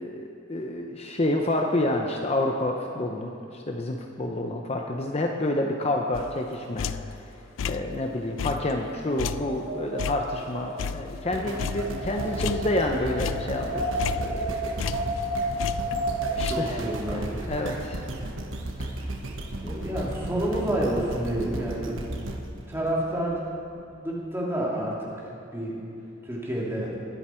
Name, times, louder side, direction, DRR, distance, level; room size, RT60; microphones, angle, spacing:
voice 1, 0.0-7.2 7.6-14.9 15.3-15.4 16.4-18.1 18.8-19.1, left 1 dB, 30° left, 2 dB, 0.7 m, -29 dB
sound 1, 6.1-7.2 7.6-8.0 8.4-11.3 11.6-12.9 13.2-15.3 15.6-16.5, left 7 dB, 80° left, 0.3 m, -33 dB
Wind, 8.9-16.8, right 1 dB, 55° right, 1.3 m, -32 dB
sound 2, 11.3-23.5 24.1-24.2, right 1 dB, 90° right, 1.2 m, -35 dB
voice 2, 16.4-17.6 19.6-22.0 22.5-23.4 23.7-25.1 25.5-25.8 26.2-27.0, right 1 dB, 10° right, -5 dB, 2.5 m, -29 dB
21.0 x 7.9 x 4.4 m, 2.7 s
head